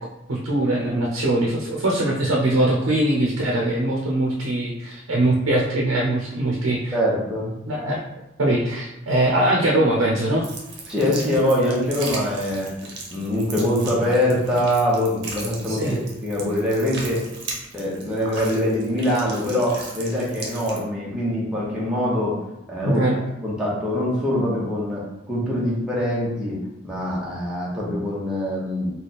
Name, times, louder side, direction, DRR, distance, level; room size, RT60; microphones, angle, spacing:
voice 1, 0.3-6.9 7.7-8.1 8.4-10.5 15.7-16.0 22.8-23.2, right 1 dB, 85° right, -3 dB, 0.7 m, -22 dB
voice 2, 6.9-7.5 10.9-12.7 13.1-15.8 16.2-17.2 17.7-22.4 22.7-23.0 23.4-28.9, left 1 dB, 5° right, -7 dB, 0.8 m, -23 dB
sound 1, 10.4-20.8, right 3 dB, 55° right, 0.8 m, -37 dB
3.3 x 2.3 x 4.1 m, 0.90 s
head